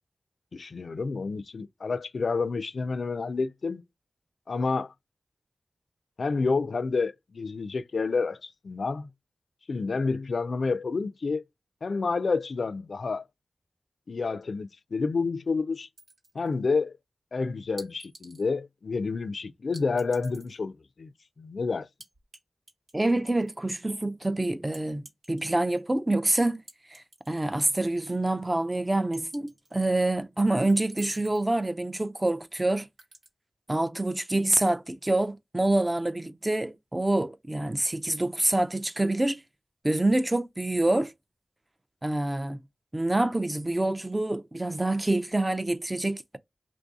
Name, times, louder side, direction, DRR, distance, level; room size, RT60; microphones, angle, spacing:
voice 1, 0.5-3.8 4.5-4.9 6.2-9.1 9.7-11.4 11.8-13.3 14.1-15.9 16.3-17.0 17.3-21.1 21.4-21.9, left 4 dB, 70° left, 0.3 m, -29 dB
sound 1, 16.0-16.5 17.8-18.5 19.7-20.6 22.0-22.4 22.7-23.5 24.7-25.8 26.7-27.7 28.0-28.1 29.1-29.9 30.7-31.5 33.0-33.3, right 2 dB, 75° right, 1.2 m, -51 dB
voice 2, 22.9-25.0 25.3-26.6 26.9-32.9 33.7-39.4 39.8-41.1 42.0-42.6 42.9-46.4, right 2 dB, 20° right, 0.3 m, -26 dB
3.0 x 2.6 x 3.5 m
wide cardioid pair, 90°, 0 cm